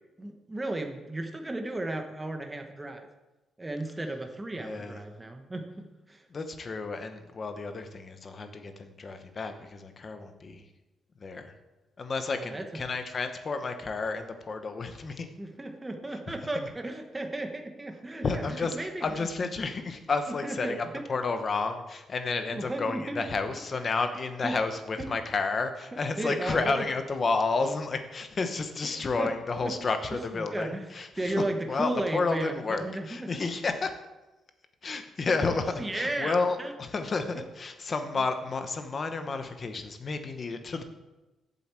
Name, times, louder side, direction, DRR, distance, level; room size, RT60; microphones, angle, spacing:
voice 1, 0.2-3.1 3.6-6.2 12.3-12.6 15.2-19.0 20.4-21.0 22.5-23.2 24.4-24.5 25.0-25.1 26.2-26.8 28.8-29.3 29.6-29.7 30.1-30.9 31.2-33.3 35.6-36.7, right 2 dB, 10° right, 4 dB, 1.0 m, -34 dB
voice 2, 4.6-5.0 6.3-10.7 11.2-11.5 12.0-15.3 16.1-16.7 18.2-33.9 34.8-40.8, left 4 dB, 30° left, 7 dB, 1.0 m, -31 dB
8.0 x 7.6 x 7.5 m, 1.1 s
cardioid pair, 175°, 0 cm